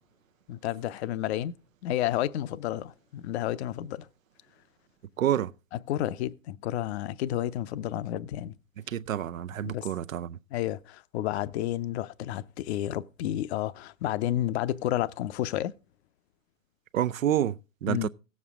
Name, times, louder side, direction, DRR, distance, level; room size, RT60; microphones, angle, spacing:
voice 1, 0.5-1.6 1.8-4.1 5.9-8.5 9.6-9.9 10.5-15.7 17.9-18.1, left 13 dB, 55° left, 0.7 m, -31 dB
voice 2, 5.2-5.5 8.9-10.4 16.9-18.1, right 11 dB, 90° right, 0.6 m, -28 dB
16.5 x 7.4 x 3.6 m
hypercardioid pair, 115°, 39 cm